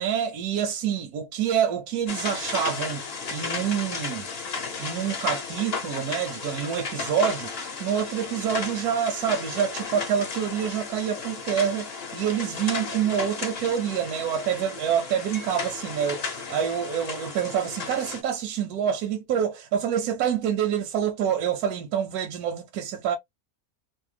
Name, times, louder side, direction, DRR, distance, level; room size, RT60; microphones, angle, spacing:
voice 1, 0.0-3.0 3.3-4.3 4.8-23.2, right 8 dB, 85° right, 1.1 m, -27 dB
sound 1, 2.1-18.2, left 5 dB, 50° left, 0.8 m, -34 dB
2.8 x 2.1 x 3.1 m
omnidirectional pair, 1.6 m